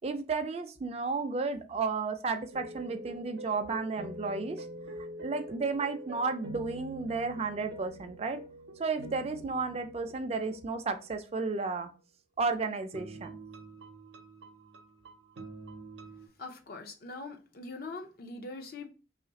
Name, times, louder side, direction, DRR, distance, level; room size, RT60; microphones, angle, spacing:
voice 1, 0.0-4.7 5.0-8.4 8.8-11.9 12.4-13.3, right 4 dB, 35° right, 0.4 m, -33 dB
sound 1, 2.5-11.8 12.9-16.3, right 1 dB, 85° right, 0.6 m, -46 dB
voice 2, 16.4-18.9, left 3 dB, 55° left, 0.6 m, -42 dB
3.1 x 2.4 x 4.0 m
head